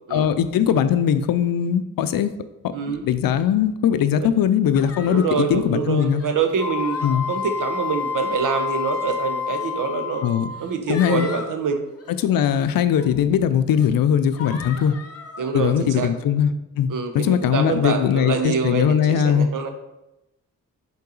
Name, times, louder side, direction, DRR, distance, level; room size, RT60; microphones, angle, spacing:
voice 1, 0.1-2.3 2.6-6.2 7.0-7.3 10.2-10.5 10.9-11.3 12.2-14.9 15.5-19.5, left 9 dB, 75° left, 12 dB, 0.5 m, -20 dB
voice 2, 2.7-3.0 4.2-4.3 5.1-7.0 7.3-10.2 10.6-11.8 15.4-16.1 16.9-19.7, right 5 dB, 65° right, 6 dB, 0.9 m, -25 dB
sound 1, 4.7-5.3 6.0-6.3 6.8-7.2 8.1-8.4 9.5-9.6 10.5-11.5 11.9-12.3 12.9-13.1 13.7-13.9 14.3-15.5, left 5 dB, 45° left, 1.0 m, -38 dB
Wind instrument woodwind instrument, 6.6-10.7, left 5 dB, 15° left, 2.0 m, -28 dB
5.5 x 4.6 x 3.9 m, 0.95 s
cardioid pair, 70°, 34 cm